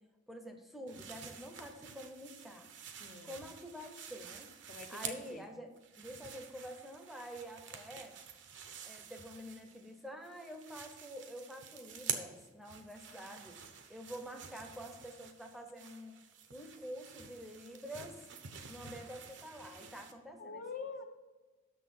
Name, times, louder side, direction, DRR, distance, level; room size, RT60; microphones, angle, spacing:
voice 1, 0.3-2.7 3.2-4.5 4.9-8.1 8.8-13.6 13.9-16.1 16.5-18.2 18.7-20.6, equal, ahead, 4 dB, 0.8 m, -48 dB
sound 1, 0.9-5.4 5.8-9.9 10.2-20.1, right 7 dB, 65° right, 0.9 m, -48 dB
voice 2, 4.7-5.4 20.4-21.0, left 4 dB, 45° left, 5 dB, 0.8 m, -45 dB
6.5 x 6.4 x 7.5 m, 1.2 s
head